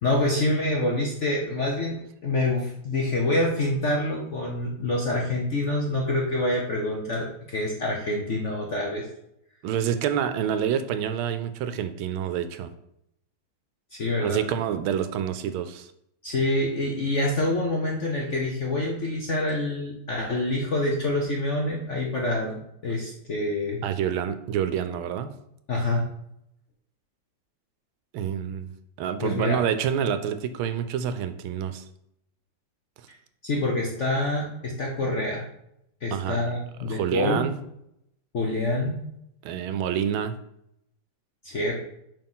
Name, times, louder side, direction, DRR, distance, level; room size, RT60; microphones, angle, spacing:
voice 1, 0.0-9.1 13.9-14.4 16.2-23.8 25.7-26.1 29.2-29.6 33.4-35.4 36.0-37.4 38.3-39.0 41.4-41.7, left 1 dB, 55° left, -1 dB, 0.8 m, -26 dB
voice 2, 9.6-12.7 14.2-15.9 23.8-25.4 28.1-28.7 29.0-31.8 36.1-36.4 36.8-37.6 39.4-40.3, right 8 dB, 80° right, 10 dB, 1.4 m, -27 dB
5.4 x 4.5 x 5.5 m, 0.77 s
omnidirectional pair, 2.3 m